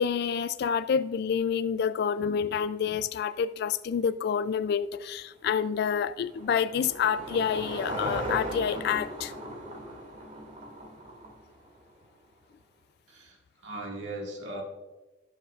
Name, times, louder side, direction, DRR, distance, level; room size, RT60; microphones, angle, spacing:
voice 1, 0.0-9.3, left 7 dB, 60° left, 14 dB, 0.3 m, -28 dB
Car passing by / Engine, 5.4-11.9, right 1 dB, 45° right, 2.3 m, -38 dB
voice 2, 13.1-14.6, right 1 dB, 70° right, -1 dB, 1.9 m, -39 dB
16.5 x 7.4 x 2.4 m, 1.1 s
head